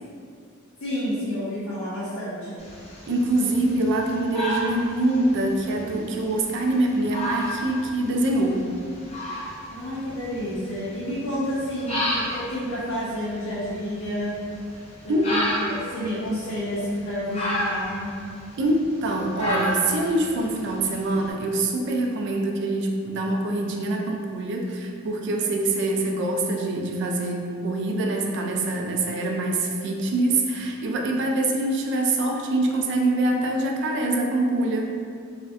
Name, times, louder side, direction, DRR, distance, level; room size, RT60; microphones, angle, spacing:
voice 1, 0.8-2.6 9.7-14.4 15.0-18.1 31.0-31.2, equal, 90° left, -9 dB, 0.5 m, -30 dB
sound 1, 2.6-21.3, equal, 30° left, 0.4 m, -33 dB
voice 2, 3.1-8.6 15.1-15.3 18.6-34.9, right 2 dB, 60° right, 1 dB, 0.3 m, -24 dB
2.4 x 2.1 x 2.5 m, 2.2 s
head